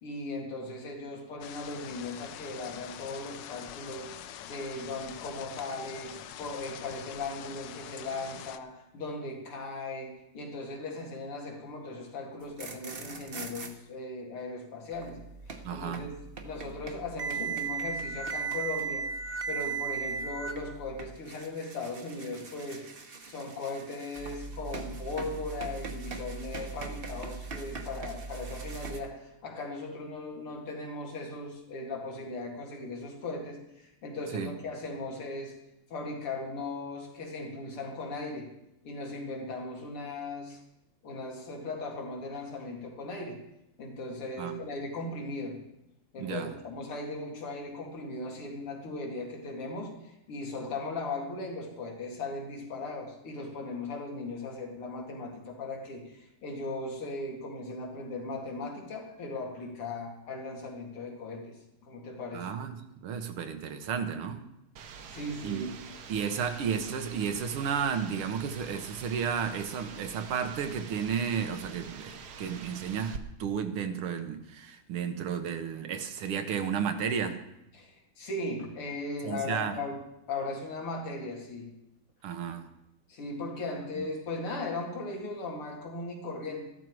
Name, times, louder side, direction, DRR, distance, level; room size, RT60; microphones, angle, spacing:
voice 1, 0.0-4.1 4.4-15.2 15.5-16.1 16.4-19.1 19.5-22.8 23.3-35.5 35.9-38.5 38.8-40.6 41.0-43.4 43.8-45.6 46.1-62.6 65.1-65.8 77.7-81.7 83.1-86.7, left 2 dB, 90° left, 0 dB, 3.1 m, -38 dB
sound 1, 1.4-8.6, left 10 dB, 70° left, 1.1 m, -44 dB
sound 2, 12.4-13.7 14.9-29.0, right 5 dB, 40° right, 0.8 m, -38 dB
voice 2, 15.6-16.0 34.3-34.5 44.4-44.6 46.2-46.5 62.3-64.4 65.4-65.6 66.1-77.4 79.2-79.8 82.2-82.7 84.0-84.1, right 7 dB, 90° right, 8 dB, 2.0 m, -33 dB
sound 3, 64.8-73.2, right 6 dB, 60° right, 1.2 m, -46 dB
13.5 x 12.5 x 4.7 m, 0.85 s
omnidirectional pair, 2.4 m